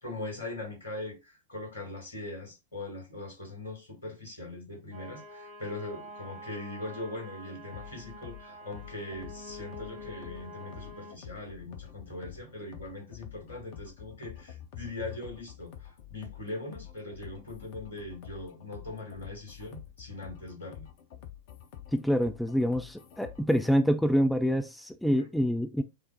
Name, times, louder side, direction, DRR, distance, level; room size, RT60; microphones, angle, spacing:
voice 1, 0.0-20.9, left 2 dB, 75° left, 2.5 m, -41 dB
sound 1, 4.9-11.1, left 1 dB, 55° right, 1.2 m, -47 dB
sound 2, 7.7-23.7, left 10 dB, 50° left, 0.8 m, -48 dB
voice 2, 21.9-25.8, equal, ahead, 0.4 m, -26 dB
5.3 x 2.0 x 4.0 m
figure-of-eight pair, 90°, 0 cm